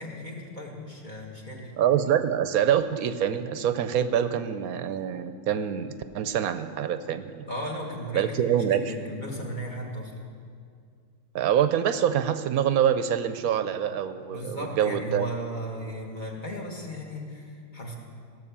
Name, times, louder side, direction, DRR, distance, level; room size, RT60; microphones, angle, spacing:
voice 1, 0.0-1.7 7.5-10.1 14.3-18.0, equal, 30° left, -1 dB, 1.7 m, -36 dB
voice 2, 1.8-7.4 8.1-8.9 11.3-15.3, right 9 dB, 75° right, 11 dB, 1.0 m, -25 dB
17.0 x 6.5 x 7.3 m, 2.2 s
omnidirectional pair, 1.6 m